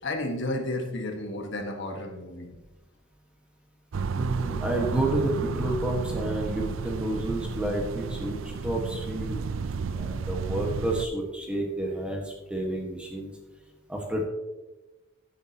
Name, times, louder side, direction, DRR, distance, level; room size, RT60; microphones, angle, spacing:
voice 1, 0.0-2.6, left 1 dB, 65° left, 3 dB, 1.8 m, -32 dB
sound 1, 3.9-11.1, right 5 dB, 75° right, 0.5 m, -32 dB
voice 2, 4.1-9.5 9.8-13.4 13.9-14.2, right 1 dB, 5° right, -1 dB, 1.6 m, -30 dB
16.5 x 8.5 x 3.0 m, 1.1 s
head